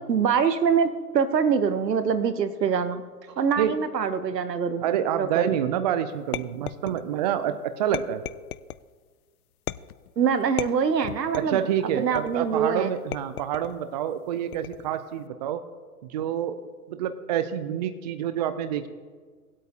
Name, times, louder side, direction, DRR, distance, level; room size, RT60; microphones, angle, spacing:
voice 1, 0.1-3.0 3.4-4.8 5.2-5.4 10.2-11.6 12.0-12.9, right 6 dB, 90° right, 12 dB, 1.0 m, -24 dB
voice 2, 4.8-8.2 11.3-15.6 16.0-16.6 16.9-18.9, right 10 dB, 30° right, 11 dB, 0.4 m, -27 dB
sound 1, 6.3-7.3 7.9-8.9 9.7-10.1 10.6-11.6 12.2-12.6 13.1-13.8 14.5-15.0, left 13 dB, 65° left, 0.5 m, -35 dB
19.5 x 8.3 x 2.8 m, 1.5 s
hypercardioid pair, 125°, 48 cm